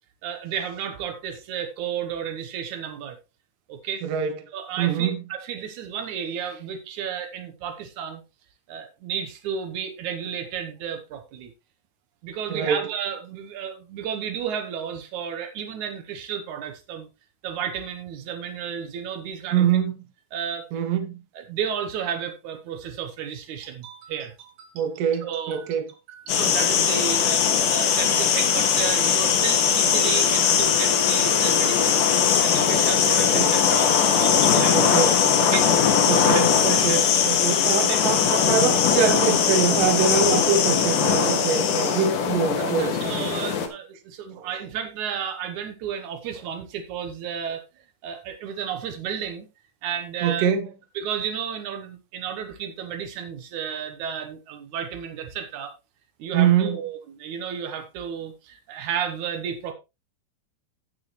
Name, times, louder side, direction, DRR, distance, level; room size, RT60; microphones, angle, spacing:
voice 1, 0.2-3.2 3.7-4.0 4.5-8.2 8.7-11.5 12.2-17.1 17.4-19.6 20.3-20.7 21.3-24.7 25.2-25.7 26.1-32.1 32.4-34.9 35.5-35.7 36.3-37.0 37.6-38.0 42.6-47.6 48.0-49.5 49.8-50.5 50.9-55.7 56.2-59.7, right 8 dB, 85° right, 1.7 m, -32 dB
voice 2, 4.0-4.3 4.8-5.2 12.5-12.9 19.5-20.0 20.7-21.1 24.7-25.9 33.2-33.6 34.7-35.2 36.1-42.9 44.3-44.5 50.2-50.7 56.3-56.8, right 7 dB, 60° right, 2.6 m, -24 dB
sound 1, 26.3-43.7, left 7 dB, 60° left, 2.5 m, -20 dB
10.5 x 9.1 x 3.2 m
omnidirectional pair, 5.1 m